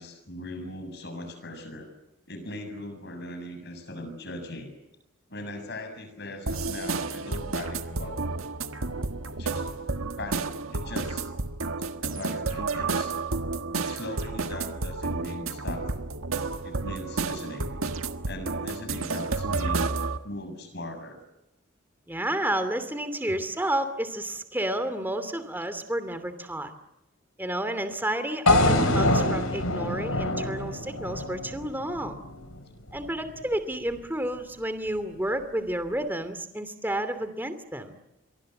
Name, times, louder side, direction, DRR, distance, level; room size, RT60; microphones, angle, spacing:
voice 1, 0.0-1.9 2.3-4.7 5.3-8.4 9.2-9.7 10.2-11.3 12.0-13.1 13.8-15.8 16.6-17.7 18.2-19.9 20.2-21.2, left 1 dB, 55° left, 8 dB, 7.2 m, -39 dB
sound 1, 6.5-20.2, right 3 dB, 85° right, 1.6 m, -31 dB
voice 2, 22.1-26.7 27.4-32.2 32.9-38.0, right 1 dB, 10° right, 10 dB, 2.7 m, -30 dB
sound 2, 28.5-32.6, left 1 dB, 80° left, 4.2 m, -25 dB
29.5 x 23.5 x 7.9 m, 0.92 s
head